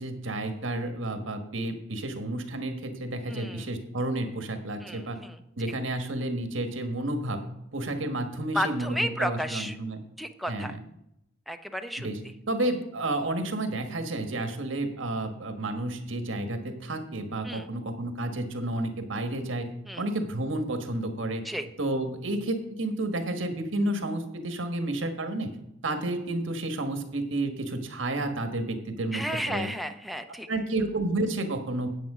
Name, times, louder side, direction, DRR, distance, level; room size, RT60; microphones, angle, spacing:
voice 1, 0.0-5.2 5.6-7.4 7.7-10.0 10.5-10.8 12.0-12.2 12.5-19.7 20.0-21.4 21.8-25.6 25.8-29.7 30.5-31.9, right 1 dB, 70° right, 7 dB, 1.4 m, -31 dB
voice 2, 3.3-3.7 4.8-5.4 8.5-9.8 10.2-10.7 11.5-12.1 17.4-17.7 19.9-20.1 21.4-21.7 29.1-30.5, equal, ahead, 6 dB, 0.5 m, -32 dB
9.2 x 8.2 x 4.9 m, 0.80 s
head